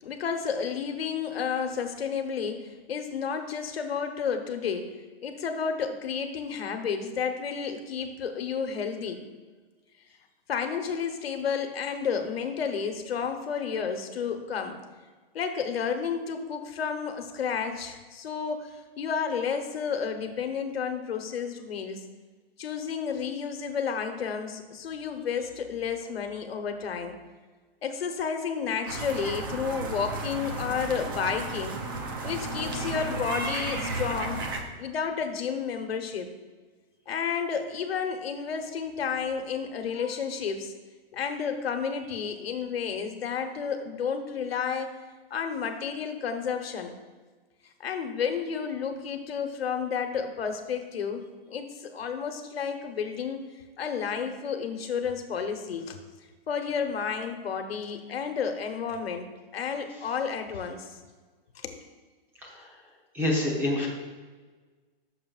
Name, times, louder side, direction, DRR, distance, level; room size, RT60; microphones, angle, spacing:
voice 1, 0.0-4.9 5.2-9.2 10.5-14.8 15.3-22.0 22.6-27.2 27.8-31.8 32.2-34.5 34.8-36.3 37.1-40.7 41.1-44.9 45.3-46.9 47.8-56.0 56.5-59.3 59.5-60.9 61.5-61.8, left 6 dB, 80° left, 6 dB, 1.2 m, -31 dB
sound 1, 28.9-34.6, right 2 dB, 25° right, 0.5 m, -33 dB
voice 2, 63.1-63.9, left 1 dB, 5° right, -4 dB, 0.9 m, -26 dB
14.5 x 6.7 x 2.4 m, 1.4 s
hypercardioid pair, 175°, 30 cm